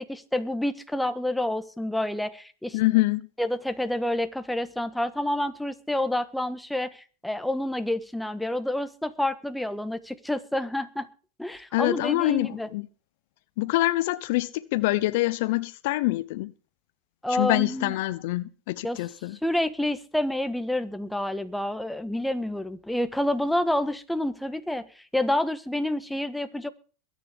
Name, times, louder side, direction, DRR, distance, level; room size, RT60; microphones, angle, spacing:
voice 1, 0.0-2.8 3.4-11.1 11.4-12.7 17.2-17.9 18.8-19.0 19.4-26.7, left 1 dB, 5° left, 1.5 m, -28 dB
voice 2, 2.7-3.3 11.7-12.9 13.6-16.5 17.3-19.4, left 19 dB, 65° left, 0.9 m, -25 dB
22.5 x 9.8 x 3.6 m
hypercardioid pair, 110°, 0 cm